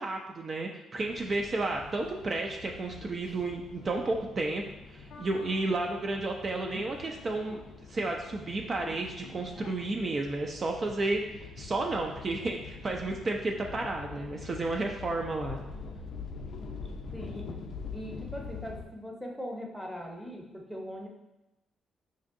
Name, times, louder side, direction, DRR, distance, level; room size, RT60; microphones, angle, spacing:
voice 1, 0.0-4.7 4.9-7.6 7.9-15.6, right 2 dB, 40° right, 1 dB, 0.4 m, -32 dB
sound 1, 1.0-18.9, left 5 dB, 65° left, 0.3 m, -44 dB
voice 2, 17.1-17.6 17.9-21.1, equal, ahead, -1 dB, 0.7 m, -40 dB
5.0 x 2.6 x 2.5 m, 0.99 s
cardioid pair, 90°, 0 cm